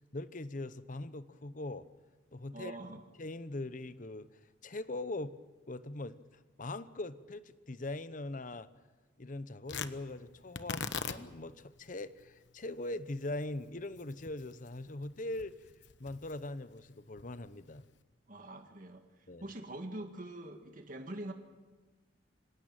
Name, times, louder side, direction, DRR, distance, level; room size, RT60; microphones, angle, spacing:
voice 1, 0.1-1.9 2.3-2.8 3.2-4.3 4.6-5.4 5.7-6.2 6.6-8.7 9.2-15.6 16.0-17.8 19.3-19.5, left 2 dB, 45° left, 14 dB, 0.9 m, -41 dB
voice 2, 2.5-3.0 18.3-21.3, right 1 dB, 45° right, 5 dB, 1.8 m, -44 dB
Tearing, 9.7-18.0, left 5 dB, 70° left, 1.1 m, -45 dB
26.0 x 17.0 x 8.9 m, 1.2 s
head